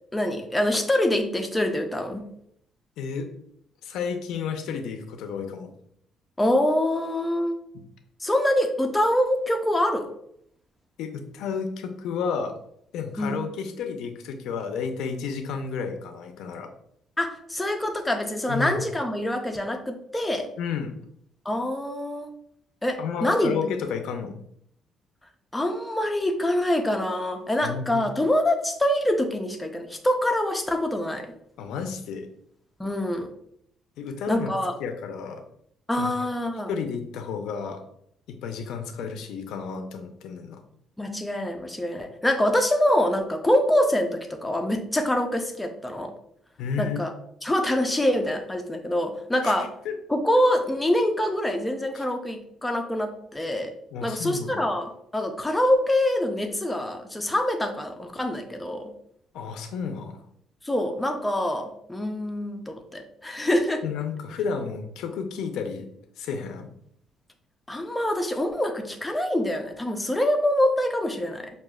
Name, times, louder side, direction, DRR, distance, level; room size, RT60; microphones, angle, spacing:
voice 1, 0.1-2.3 6.4-7.6 8.2-10.1 13.2-13.4 17.2-20.5 21.5-22.3 22.8-23.6 25.5-31.3 32.8-33.3 34.3-34.7 35.9-36.7 41.0-46.1 46.8-47.1 47.4-49.7 50.1-53.7 54.0-58.9 60.6-63.8 67.7-71.5, left 1 dB, 10° left, 4 dB, 0.5 m, -25 dB
voice 2, 3.0-3.3 3.8-5.7 7.7-7.8 11.0-12.5 12.9-16.7 18.5-18.8 20.6-20.9 23.0-24.4 27.6-28.1 31.6-32.3 34.0-34.5 34.8-35.4 36.0-36.3 36.7-37.8 38.3-40.6 46.6-47.0 49.4-49.5 49.8-50.0 51.9-52.0 53.9-54.6 59.3-60.2 63.8-65.9 66.2-66.7, left 6 dB, 85° left, 6 dB, 0.6 m, -32 dB
6.1 x 2.4 x 2.3 m, 0.70 s
cardioid pair, 150°, 0 cm